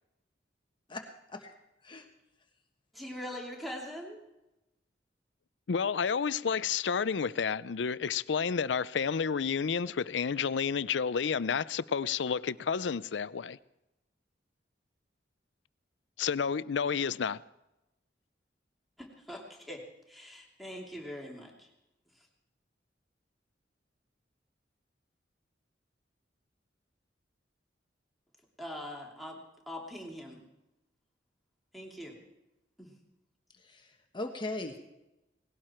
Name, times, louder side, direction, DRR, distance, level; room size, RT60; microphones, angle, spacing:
voice 1, 0.9-1.5 1.8-2.1 33.5-34.8, left 2 dB, 25° left, 1.2 m, -39 dB
voice 2, 2.9-4.2 19.0-19.8 20.1-21.7 28.6-29.4 29.7-30.4 31.7-32.2 32.8-32.9, equal, ahead, 2.8 m, -42 dB
voice 3, 5.7-13.6 16.2-17.4, left 6 dB, 75° left, 0.5 m, -30 dB
19.5 x 17.0 x 4.4 m
head